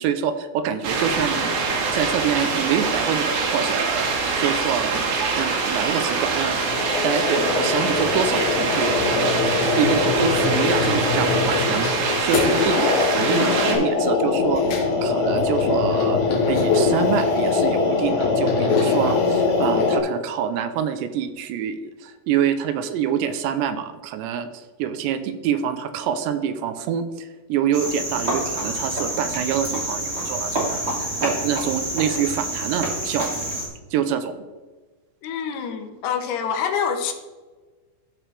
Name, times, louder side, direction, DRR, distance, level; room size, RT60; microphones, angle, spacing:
voice 1, 0.0-16.2 16.5-33.6 33.9-34.3, right 8 dB, 90° right, 9 dB, 2.8 m, -26 dB
sound 1, 0.8-13.8, right 4 dB, 70° right, 3.4 m, -24 dB
sound 2, 6.4-20.0, left 4 dB, 60° left, 2.4 m, -22 dB
Cricket, 27.7-33.7, right 1 dB, 35° right, 1.0 m, -27 dB
voice 2, 35.2-37.1, left 7 dB, 75° left, 5 dB, 2.8 m, -26 dB
15.0 x 5.0 x 3.3 m, 1.3 s
omnidirectional pair, 5.0 m